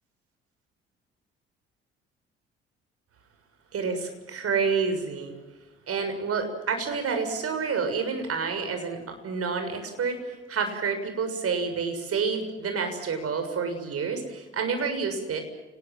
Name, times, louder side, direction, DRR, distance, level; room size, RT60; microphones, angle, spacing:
voice 1, 3.7-5.3 5.9-15.4, right 5 dB, 50° right, 7 dB, 6.8 m, -29 dB
30.0 x 20.0 x 7.6 m, 1.2 s
figure-of-eight pair, 50°, 31 cm